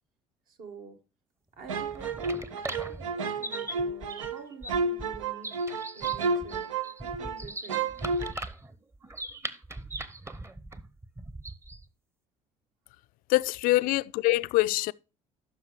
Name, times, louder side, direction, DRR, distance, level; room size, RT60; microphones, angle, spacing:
voice 1, 0.5-1.0 1.6-5.5 5.9-6.7 7.0-7.9 13.7-13.9, right 5 dB, 60° right, 1.5 m, -48 dB
sound 1, 1.6-11.9, right 2 dB, 15° right, 0.8 m, -40 dB
sound 2, 1.7-7.4 7.7-8.3, right 4 dB, 90° right, 0.5 m, -31 dB
voice 2, 13.3-14.9, left 18 dB, 60° left, 0.4 m, -24 dB
12.5 x 5.7 x 3.1 m
hypercardioid pair, 60°, 16 cm